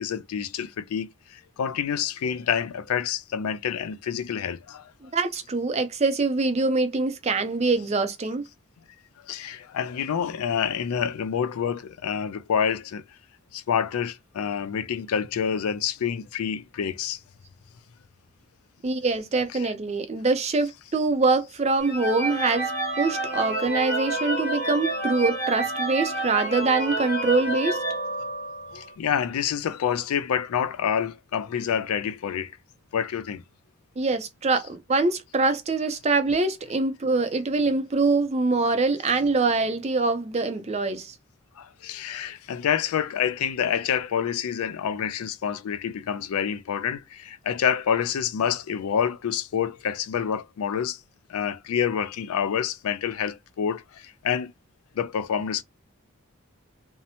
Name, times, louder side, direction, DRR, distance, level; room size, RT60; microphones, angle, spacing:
voice 1, 0.0-4.9 9.2-13.0 13.5-17.2 19.5-19.7 28.7-32.5 32.9-33.4 41.6-51.0 51.3-54.5 54.9-55.6, left 8 dB, 80° left, 0.4 m, -27 dB
voice 2, 5.0-8.5 18.8-22.7 23.0-27.8 34.0-41.1, right 3 dB, 30° right, 0.4 m, -24 dB
sound 1, 21.8-28.8, right 2 dB, 35° left, 1.1 m, -29 dB
2.7 x 2.0 x 2.7 m
head